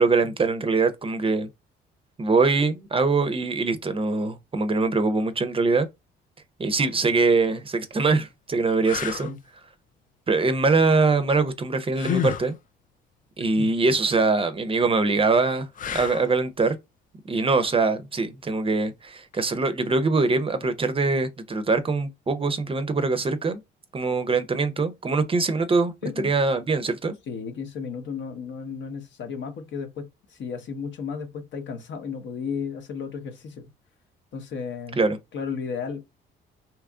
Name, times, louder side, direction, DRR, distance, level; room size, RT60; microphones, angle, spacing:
voice 1, 0.0-1.5 2.2-5.9 6.6-9.3 10.3-12.6 13.4-16.8 17.3-23.6 23.9-27.1 35.0-35.2, right 3 dB, 30° right, 0.5 m, -23 dB
sound 1, 7.4-7.5 8.1-8.2 8.8-9.3 11.9-12.5 15.7-16.4 19.3-19.5, left 8 dB, 40° left, 0.4 m, -29 dB
voice 2, 26.0-26.3 27.3-33.6 34.3-35.0 35.3-36.0, left 6 dB, 70° left, 0.8 m, -34 dB
2.9 x 2.4 x 3.5 m
cardioid pair, 90°, 20 cm